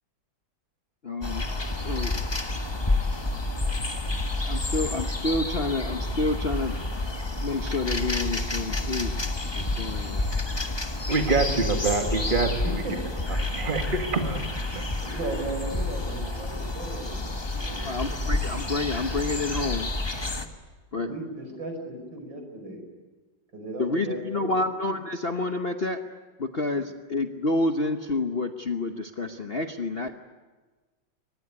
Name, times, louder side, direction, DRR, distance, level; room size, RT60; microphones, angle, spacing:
voice 1, 1.0-1.4 1.8-2.1 4.5-6.8 7.4-9.1 9.6-10.2 17.7-19.9 20.9-21.1 23.8-26.0 26.4-30.1, left 2 dB, 40° left, 6 dB, 1.0 m, -29 dB
sound 1, 1.2-20.5, left 2 dB, 15° left, 1.2 m, -29 dB
voice 2, 11.1-12.8 13.4-14.4 14.7-14.8, right 3 dB, 25° right, 4 dB, 2.1 m, -26 dB
voice 3, 12.6-13.3 13.6-14.2 15.0-18.0 20.9-22.8 23.5-24.6 26.7-26.8, right 2 dB, 75° right, 4 dB, 6.2 m, -37 dB
24.5 x 20.0 x 9.7 m, 1.3 s
omnidirectional pair, 2.1 m